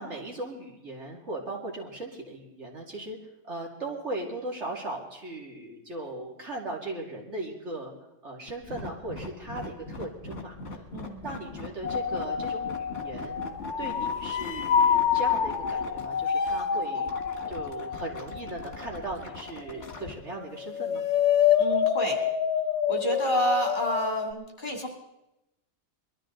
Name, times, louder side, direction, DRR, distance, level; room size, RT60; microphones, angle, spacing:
voice 1, 0.0-3.2 3.4-7.9 8.2-10.8 11.2-17.1 17.5-21.0, right 2 dB, 75° right, -1 dB, 2.8 m, -38 dB
sound 1, 8.5-20.1, left 3 dB, 60° left, 2.1 m, -41 dB
sound 2, 11.8-20.1 20.4-24.3, left 8 dB, 80° left, 1.2 m, -27 dB
voice 2, 21.6-22.2 22.9-24.9, equal, 45° left, 0 dB, 3.1 m, -29 dB
22.0 x 13.0 x 3.9 m, 0.88 s
omnidirectional pair, 1.2 m